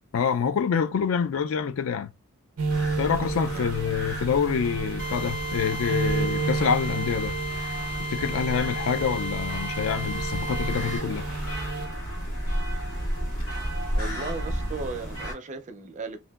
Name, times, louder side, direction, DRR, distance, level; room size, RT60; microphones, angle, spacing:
voice 1, 0.1-2.1 3.0-7.3 8.0-11.3, left 7 dB, 70° left, 0.4 m, -26 dB
sound 1, 2.6-11.9, right 4 dB, 90° right, 0.5 m, -32 dB
sound 2, 2.7-15.3, equal, 85° left, 1.5 m, -33 dB
Drill, 5.0-11.0, left 1 dB, 40° left, 1.2 m, -35 dB
voice 2, 13.9-16.2, right 3 dB, 35° right, 0.4 m, -36 dB
2.7 x 2.1 x 2.2 m
head